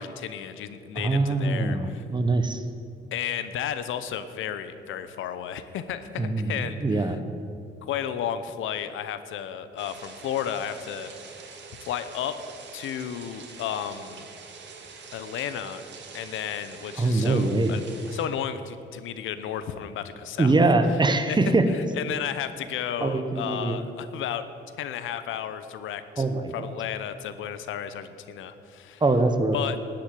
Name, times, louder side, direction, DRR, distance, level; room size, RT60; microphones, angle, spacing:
voice 1, 0.0-2.0 3.1-7.1 7.8-11.1 11.9-12.4 12.7-14.2 15.1-15.8 16.1-17.8 18.1-20.5 20.9-21.0 21.3-21.4 21.7-24.4 24.8-26.2 26.5-29.0 29.5-29.8, left 9 dB, 80° left, 12 dB, 0.8 m, -33 dB
voice 2, 0.9-2.6 6.2-7.2 17.0-17.7 20.4-21.6 23.0-23.8 26.2-26.5 29.0-29.6, right 2 dB, 20° right, 8 dB, 1.1 m, -23 dB
sound 1, 9.8-18.3, right 5 dB, 65° right, 2.1 m, -45 dB
13.0 x 7.9 x 8.9 m, 2.5 s
cardioid pair, 90°, 20 cm